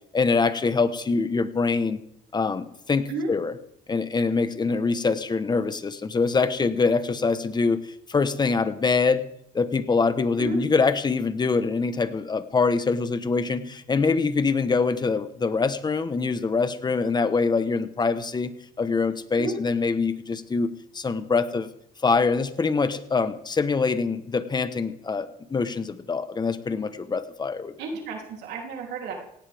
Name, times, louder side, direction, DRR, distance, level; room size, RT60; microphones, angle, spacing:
voice 1, 0.1-2.0 2.3-3.5 3.9-9.3 9.5-18.5 18.8-20.7 20.9-21.7 22.0-27.7, left 4 dB, 25° left, 11 dB, 1.2 m, -24 dB
voice 2, 27.8-29.1, right 3 dB, 80° right, 0 dB, 3.4 m, -32 dB
17.5 x 17.0 x 3.6 m, 0.73 s
cardioid pair, 110°, 17 cm